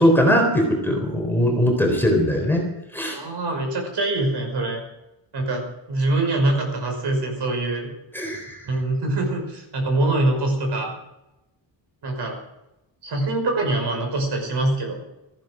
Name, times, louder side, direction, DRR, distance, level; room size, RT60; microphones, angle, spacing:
voice 1, 0.0-2.6 2.9-3.2 8.1-8.6, equal, 5° left, 1 dB, 3.8 m, -20 dB
voice 2, 3.1-4.8 5.3-7.9 8.6-10.9 12.0-12.4 13.0-15.0, right 2 dB, 55° right, 3 dB, 5.5 m, -24 dB
18.5 x 15.0 x 5.1 m, 0.91 s
wide cardioid pair, 170°, 47 cm